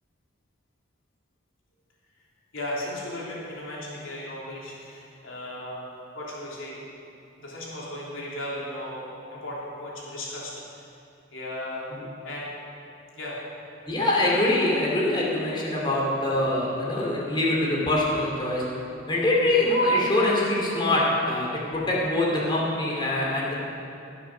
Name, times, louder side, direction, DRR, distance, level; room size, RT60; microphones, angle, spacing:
voice 1, 2.5-6.8 7.4-10.8 11.3-11.8 12.2-12.5 13.1-13.4, left 1 dB, 80° left, -5 dB, 3.2 m, -36 dB
voice 2, 13.9-18.7 19.1-23.5, left 1 dB, 25° left, -4 dB, 2.7 m, -24 dB
17.0 x 7.0 x 6.2 m, 2.7 s
head